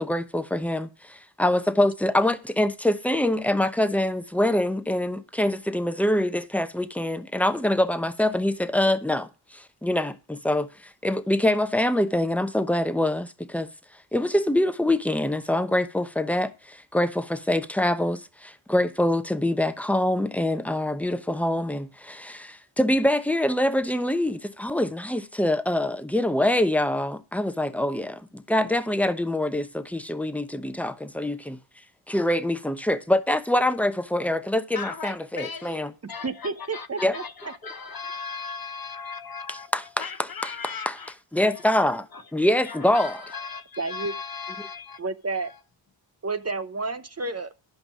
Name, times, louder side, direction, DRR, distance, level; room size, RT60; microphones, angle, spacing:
voice 1, 0.0-10.7 11.0-13.7 14.1-31.6 32.1-35.9 37.0-37.1 39.7-40.0 40.4-40.5 40.9-41.0 41.3-42.1 42.3-43.2, left 1 dB, 5° left, 0.9 m, -25 dB
voice 2, 34.7-41.1 41.5-41.7 42.1-42.2 42.6-45.0 45.3-45.6, left 5 dB, 50° left, 0.9 m, -37 dB
voice 3, 36.0-37.5 43.8-44.1 45.0-45.5 46.2-47.5, right 3 dB, 30° right, 0.8 m, -31 dB
11.0 x 5.3 x 6.0 m
cardioid pair, 60°, 47 cm